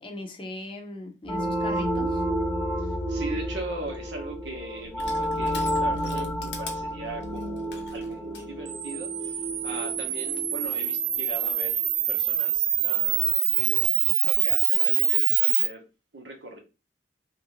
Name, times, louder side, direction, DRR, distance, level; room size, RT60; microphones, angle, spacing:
voice 1, 0.0-2.2, left 2 dB, 30° left, 0.5 m, -39 dB
sound 1, 1.2-11.7, equal, 5° right, 0.9 m, -30 dB
voice 2, 2.8-11.8 12.1-15.8 16.1-16.6, right 2 dB, 85° right, 0.9 m, -39 dB
Crushing, 3.6-8.5, left 5 dB, 70° left, 0.7 m, -44 dB
Camera, 8.7-15.7, right 10 dB, 50° right, 0.4 m, -25 dB
3.0 x 2.6 x 2.9 m
head